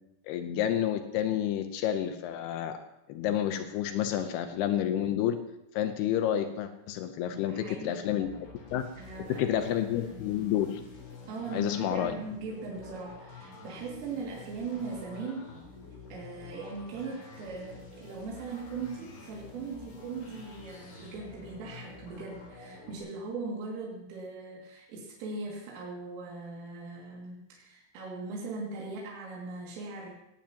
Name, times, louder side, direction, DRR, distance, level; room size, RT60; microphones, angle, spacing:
voice 1, 0.3-2.8 3.1-5.4 5.7-8.3 8.7-8.8 9.3-10.8 11.5-12.1, left 11 dB, 90° left, 7 dB, 2.2 m, -29 dB
voice 2, 7.2-8.5 9.0-9.7 11.3-15.5 16.1-30.1, right 4 dB, 80° right, -4 dB, 5.0 m, -40 dB
sound 1, 8.2-23.0, left 3 dB, 60° left, 6.0 m, -48 dB
19.0 x 18.0 x 2.9 m, 0.85 s
omnidirectional pair, 5.7 m